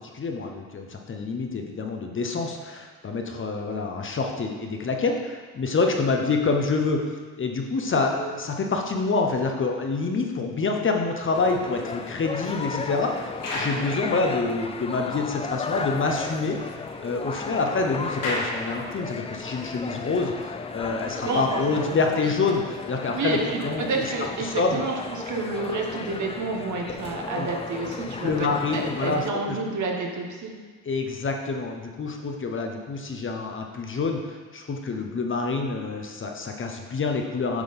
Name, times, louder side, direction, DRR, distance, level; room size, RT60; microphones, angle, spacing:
voice 1, 0.1-7.0 7.4-16.6 17.0-23.9 24.4-24.8 27.4-27.5 28.2-29.6 30.8-37.6, left 4 dB, 35° left, 3 dB, 0.9 m, -27 dB
sound 1, 11.3-14.8 15.3-15.4 15.8-15.9 16.1-19.4, left 1 dB, 55° left, 1.9 m, -37 dB
sound 2, 11.3-29.3, left 4 dB, 15° left, 0.4 m, -35 dB
voice 2, 21.1-22.0 23.1-30.5, right 3 dB, 50° right, 1 dB, 1.4 m, -30 dB
8.1 x 3.8 x 5.3 m, 1.4 s
supercardioid pair, 85°, 37 cm